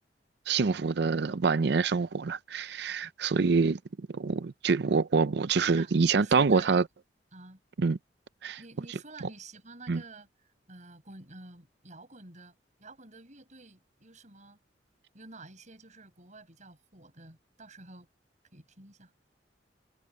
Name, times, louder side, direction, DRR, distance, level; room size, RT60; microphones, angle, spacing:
voice 1, 0.5-3.8 4.1-6.8 7.8-8.0 8.4-8.6 9.2-9.3 9.9-10.0, right 4 dB, 65° right, 0.5 m, -26 dB
voice 2, 5.5-6.8 7.3-7.6 8.6-10.3 10.7-14.6 15.1-18.1 18.5-19.1, right 3 dB, 45° right, 6.8 m, -50 dB
head